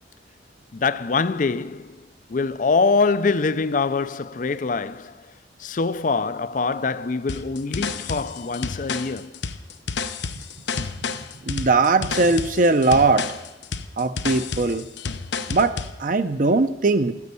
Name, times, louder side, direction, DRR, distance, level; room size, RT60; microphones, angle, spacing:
voice 1, 0.7-5.3 5.6-9.4, left 4 dB, 45° left, 0.5 m, -24 dB
sound 1, 7.3-16.0, left 5 dB, 75° left, 0.7 m, -30 dB
voice 2, 11.5-13.3 14.0-14.8 15.5-17.1, right 3 dB, 45° right, 0.6 m, -20 dB
13.0 x 9.4 x 8.3 m
head